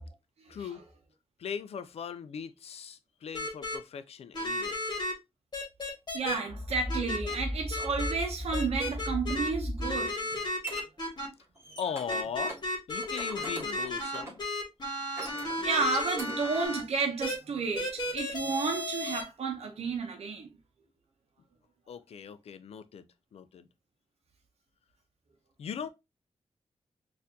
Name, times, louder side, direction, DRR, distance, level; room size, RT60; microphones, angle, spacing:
voice 1, 0.5-0.8 1.4-4.8 11.8-12.6 12.9-14.4 14.9-15.1 21.9-23.7 25.6-25.9, left 7 dB, 80° left, 0.4 m, -39 dB
sound 1, 3.3-3.8 4.3-5.1 5.5-6.4 6.9-7.4 7.7-8.1 8.5-9.5 9.8-11.3 12.1-16.8 17.2-17.4 17.8-19.2, left 1 dB, 40° left, 1.4 m, -33 dB
voice 2, 6.1-10.2 15.6-20.5, right 4 dB, 85° right, 0.7 m, -32 dB
sound 2, 6.5-10.1, left 1 dB, 10° left, 0.5 m, -36 dB
sound 3, 10.3-10.8 11.4-12.2 12.5-12.6 13.0-14.5 15.0-16.7, right 2 dB, 25° right, 1.3 m, -43 dB
4.2 x 2.5 x 2.6 m
wide cardioid pair, 85°, 10 cm